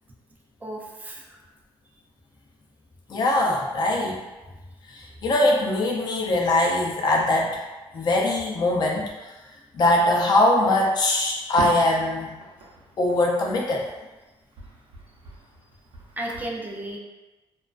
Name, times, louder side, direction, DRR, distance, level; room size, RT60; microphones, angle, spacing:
voice 1, 0.6-1.2 16.2-17.0, right 1 dB, 15° right, -1 dB, 0.3 m, -33 dB
voice 2, 3.1-4.2 4.9-7.6 7.9-9.1 9.7-12.4 13.0-13.9, left 1 dB, 45° left, -1 dB, 0.5 m, -22 dB
Fireworks, 11.6-14.2 14.5-16.5, right 2 dB, 70° right, 0.6 m, -40 dB
2.4 x 2.2 x 2.3 m, 1.1 s
cardioid pair, 150°, 10 cm